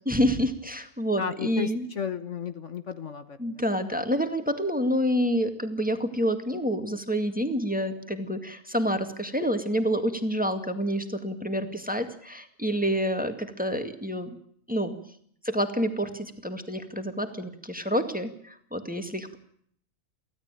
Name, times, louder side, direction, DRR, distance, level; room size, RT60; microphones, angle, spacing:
voice 1, 0.1-1.8 3.4-14.3 14.7-14.9 15.4-19.4, equal, 5° right, 7 dB, 2.0 m, -28 dB
voice 2, 1.2-3.6, left 7 dB, 60° left, 10 dB, 1.5 m, -34 dB
24.5 x 16.0 x 9.1 m, 0.65 s
omnidirectional pair, 1.5 m